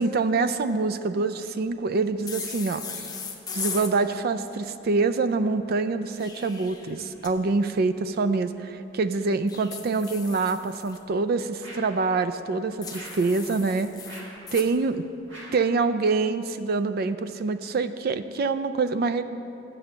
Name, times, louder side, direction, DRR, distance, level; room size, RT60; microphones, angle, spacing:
voice 1, 0.0-3.1 3.5-13.9 14.5-15.1 15.5-19.2, right 3 dB, 55° right, 12 dB, 0.4 m, -25 dB
sound 1, 2.3-3.9 6.0-7.3 9.5-11.0 12.8-14.7, left 5 dB, 20° left, 0.7 m, -38 dB
sound 2, 11.6-12.0 12.9-13.3 14.0-14.4 15.3-15.7, right 1 dB, 75° right, 2.2 m, -43 dB
7.6 x 6.8 x 7.1 m, 2.8 s
head